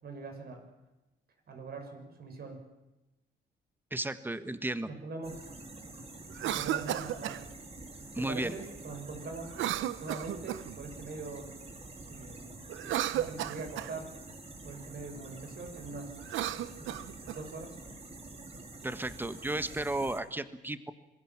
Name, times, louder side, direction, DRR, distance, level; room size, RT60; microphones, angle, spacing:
voice 1, 0.0-0.7 1.5-2.6 4.9-5.4 6.4-7.5 8.2-9.5 10.0-11.5 12.1-12.5 12.8-14.1 14.6-16.2 16.8-17.8, right 3 dB, 50° right, 5 dB, 6.5 m, -42 dB
voice 2, 3.9-4.9 8.1-8.5 18.8-20.9, right 2 dB, 10° right, 12 dB, 1.5 m, -34 dB
sound 1, 5.2-20.2, right 2 dB, 30° right, 4.1 m, -47 dB
Cough, 6.3-7.4 9.5-10.8 12.7-13.9 16.2-17.4, right 12 dB, 75° right, 1.0 m, -34 dB
26.0 x 20.5 x 7.4 m, 1.0 s
cardioid pair, 90°, 20 cm